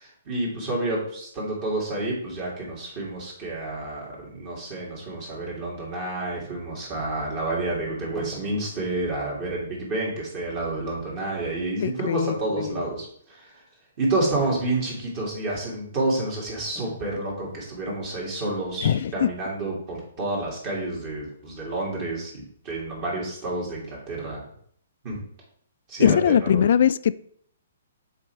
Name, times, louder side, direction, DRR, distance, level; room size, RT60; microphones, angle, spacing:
voice 1, 0.0-13.5 14.0-24.4 25.0-25.2 25.9-26.6, right 2 dB, 35° right, -4 dB, 2.2 m, -29 dB
sound 1, 8.1-8.7 14.3-14.8 16.7-17.1 17.4-17.7, equal, 20° right, 1.8 m, -41 dB
voice 2, 11.8-12.8 18.8-19.3 26.0-27.2, left 9 dB, 60° left, 16 dB, 0.3 m, -21 dB
5.8 x 4.3 x 4.6 m, 0.64 s
hypercardioid pair, 145°, 0 cm